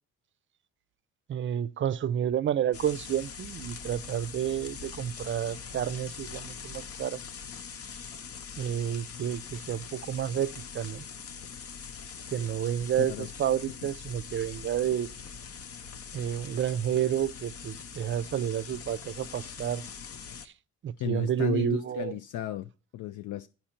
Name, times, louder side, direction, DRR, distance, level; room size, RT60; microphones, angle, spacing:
voice 1, 1.3-7.2 8.6-11.0 12.3-15.1 16.1-19.8 20.4-20.5 20.8-22.2, right 10 dB, 40° right, 0.5 m, -30 dB
sound 1, 2.7-20.5, left 6 dB, 50° left, 0.7 m, -43 dB
voice 2, 21.0-23.5, left 11 dB, 75° left, 0.5 m, -34 dB
8.7 x 5.7 x 4.3 m
cardioid pair, 90°, 30 cm